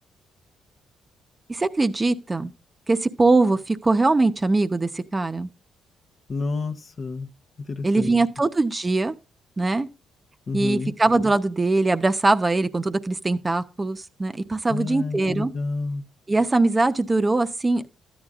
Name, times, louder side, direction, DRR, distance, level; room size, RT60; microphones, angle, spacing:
voice 1, 1.5-2.5 2.9-5.5 7.8-9.1 9.6-9.9 10.5-15.5 16.3-17.9, right 2 dB, 20° right, 0.8 m, -22 dB
voice 2, 6.3-7.3 7.7-8.2 10.5-10.9 14.7-16.0, left 3 dB, 45° left, 0.8 m, -29 dB
13.0 x 9.9 x 2.5 m
cardioid pair, 90°, 0 cm